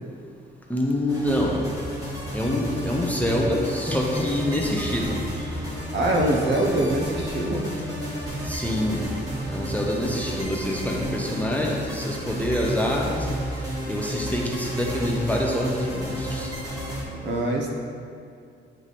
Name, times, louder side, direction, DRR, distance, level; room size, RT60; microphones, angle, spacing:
voice 1, 0.7-1.7 2.3-5.5 8.4-9.1 9.5-13.3 13.9-16.5, left 1 dB, 10° left, -2 dB, 0.5 m, -26 dB
sound 1, 1.1-17.0, equal, 20° right, 1.4 m, -32 dB
voice 2, 5.9-7.6 17.2-17.7, right 1 dB, 65° right, 0 dB, 0.9 m, -23 dB
8.7 x 3.3 x 4.1 m, 2.4 s
wide cardioid pair, 180°, 19 cm